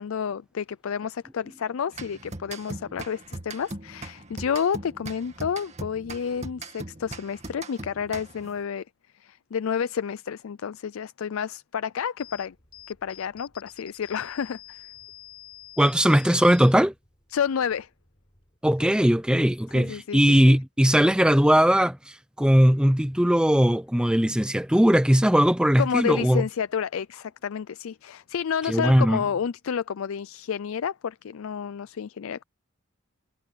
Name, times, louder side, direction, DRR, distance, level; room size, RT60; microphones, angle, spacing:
voice 1, 0.0-8.8 9.2-12.5 12.9-14.9 17.3-17.9 19.7-20.6 25.8-32.4, left 7 dB, 85° left, 0.4 m, -30 dB
sound 1, 1.9-8.6, right 2 dB, 35° right, 2.2 m, -40 dB
sound 2, 12.2-18.6, left 12 dB, 25° left, 7.3 m, -49 dB
voice 2, 15.8-16.9 18.6-26.4 28.7-29.2, equal, 5° right, 0.8 m, -19 dB
head